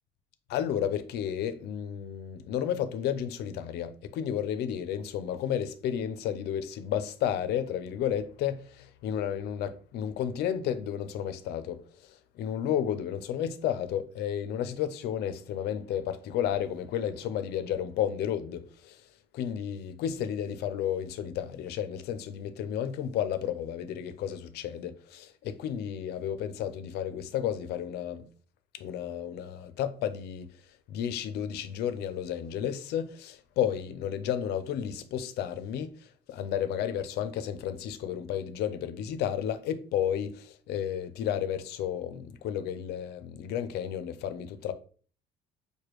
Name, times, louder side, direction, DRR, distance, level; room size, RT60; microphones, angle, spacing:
voice 1, 0.5-11.8 12.4-19.0 19.3-28.3 28.7-30.5 30.9-35.9 36.3-44.7, left 9 dB, 75° left, 0.5 m, -32 dB
4.8 x 2.2 x 3.0 m
cardioid pair, 110°, 17 cm